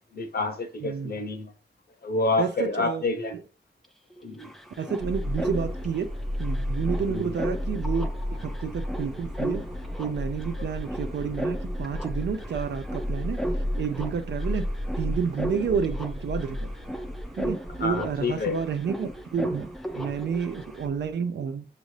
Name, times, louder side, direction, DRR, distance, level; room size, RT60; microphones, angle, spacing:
voice 1, 0.1-1.5 2.0-3.4 4.2-4.5 7.0-7.3 17.8-18.6 19.9-20.1, left 3 dB, 60° left, 0.8 m, -28 dB
voice 2, 2.4-3.0 4.8-6.1 6.4-8.1 8.4-9.6 10.0-13.4 13.8-14.7 15.0-16.7 17.4-21.7, right 6 dB, 75° right, 0.4 m, -30 dB
sound 1, 3.8-20.9, right 1 dB, ahead, 0.4 m, -37 dB
Subway metro underground, 5.0-21.1, left 1 dB, 30° right, 0.7 m, -34 dB
6.3 x 2.5 x 3.2 m
wide cardioid pair, 145°, 18 cm